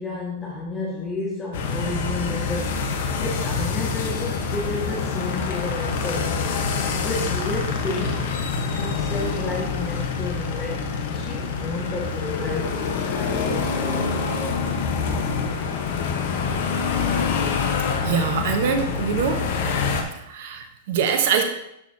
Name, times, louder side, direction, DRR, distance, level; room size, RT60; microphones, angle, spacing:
voice 1, 0.0-8.3 8.7-14.1 14.8-14.9, left 2 dB, 20° left, -4 dB, 1.8 m, -31 dB
sound 1, 1.5-20.0, left 5 dB, 60° left, 1.1 m, -26 dB
voice 2, 18.0-19.4 20.2-21.4, right 7 dB, 60° right, 6 dB, 1.0 m, -23 dB
10.0 x 6.3 x 2.8 m, 0.80 s
hypercardioid pair, 105°, 0 cm